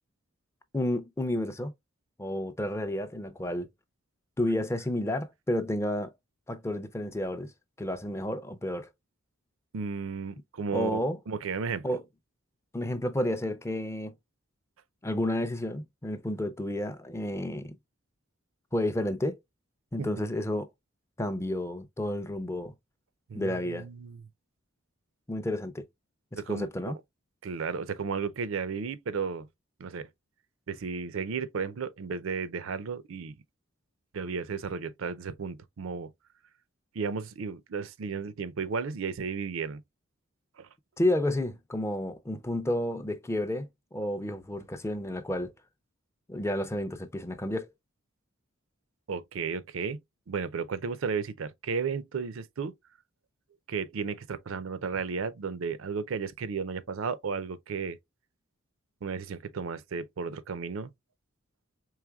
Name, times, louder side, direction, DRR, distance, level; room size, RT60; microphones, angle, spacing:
voice 1, 0.7-1.7 2.2-3.7 4.4-6.1 6.5-7.5 7.8-8.9 10.7-11.2 11.8-12.0 12.7-14.1 15.0-17.8 18.7-19.4 19.9-20.7 21.2-22.7 23.3-23.9 25.3-25.9 26.3-27.0 41.0-45.5 46.3-47.7, left 1 dB, 15° left, 0.4 m, -31 dB
voice 2, 9.7-11.8 20.0-20.1 23.3-24.2 26.4-26.9 27.4-29.5 29.8-30.1 30.7-33.4 34.1-36.1 36.9-39.8 40.6-40.7 49.1-50.0 50.3-52.7 53.7-58.0 59.0-60.9, right 5 dB, 75° right, 0.5 m, -34 dB
4.8 x 3.2 x 2.2 m
head